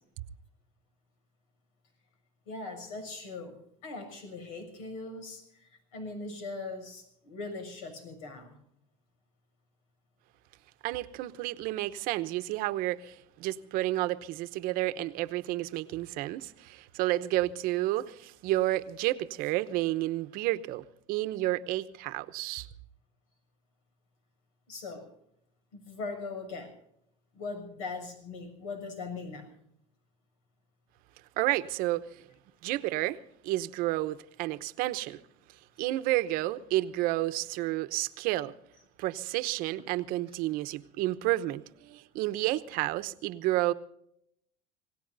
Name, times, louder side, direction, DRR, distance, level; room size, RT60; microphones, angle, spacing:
voice 1, 2.5-8.6 24.7-25.1 25.7-26.7 27.3-29.6 39.8-39.9, left 3 dB, 85° left, 7 dB, 6.8 m, -40 dB
voice 2, 10.8-22.7 31.4-32.0 32.6-33.2 33.4-35.2 35.8-38.5 39.0-43.7, right 16 dB, 60° right, 13 dB, 0.9 m, -31 dB
27.5 x 18.0 x 2.7 m, 0.73 s
supercardioid pair, 125°, 17 cm